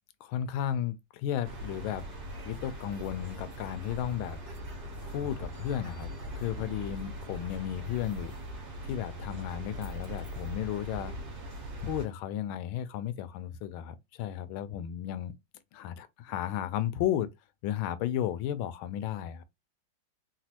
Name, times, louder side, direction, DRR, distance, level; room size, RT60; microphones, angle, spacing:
voice 1, 0.2-2.0 2.4-4.4 5.1-6.1 6.4-8.3 8.9-11.1 11.8-15.3 15.7-17.3 17.6-19.4, left 11 dB, 80° left, 1.4 m, -34 dB
sound 1, 1.4-12.1, equal, 55° right, 1.7 m, -40 dB
4.1 x 2.2 x 2.8 m
omnidirectional pair, 2.2 m